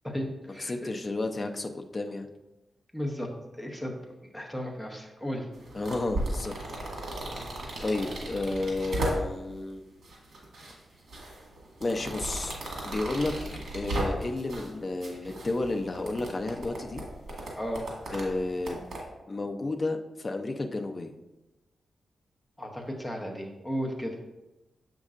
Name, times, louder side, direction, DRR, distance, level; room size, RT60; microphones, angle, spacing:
voice 1, 0.0-0.7 2.9-3.3 3.6-3.9 4.3-5.5 17.6-17.9 22.6-24.2, equal, 5° left, 1 dB, 1.0 m, -34 dB
voice 2, 0.6-2.3 5.7-6.5 7.8-9.8 11.8-12.6 12.8-17.0 18.1-18.8 19.3-21.1, left 2 dB, 35° left, 4 dB, 0.5 m, -32 dB
sound 1, 5.5-9.5 10.0-10.7 11.1-14.7 15.0-19.0, right 1 dB, 65° right, 1.7 m, -35 dB
7.2 x 5.3 x 2.5 m, 1.0 s
wide cardioid pair, 100°, 0 cm